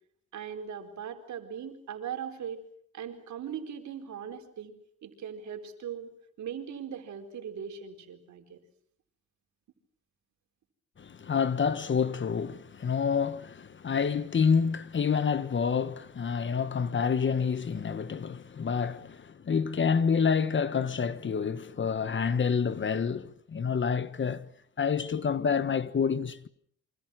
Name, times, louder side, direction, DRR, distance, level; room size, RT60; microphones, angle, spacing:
voice 1, 0.3-2.6 2.9-4.7 5.0-6.1 6.4-8.6, right 8 dB, 70° right, 4.4 m, -39 dB
voice 2, 11.0-24.5 24.8-26.5, left 6 dB, 40° left, 1.4 m, -28 dB
28.0 x 25.5 x 6.3 m
cardioid pair, 90°, 30 cm